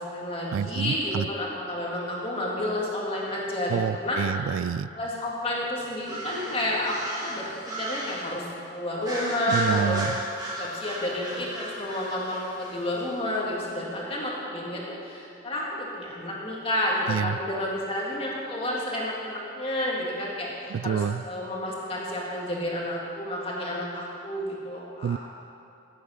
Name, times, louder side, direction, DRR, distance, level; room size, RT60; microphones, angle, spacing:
voice 1, 0.0-4.4 5.0-7.5 7.8-10.0 10.6-25.2, left 1 dB, 30° left, -4 dB, 2.1 m, -30 dB
voice 2, 0.5-1.3 3.7-4.9 9.5-10.1 17.1-17.4 20.7-21.2 25.0-25.2, right 7 dB, 90° right, 18 dB, 0.3 m, -27 dB
sound 1, 6.0-8.3 9.0-13.0, right 1 dB, 20° right, 2.0 m, -36 dB
14.5 x 8.4 x 5.6 m, 2.6 s
head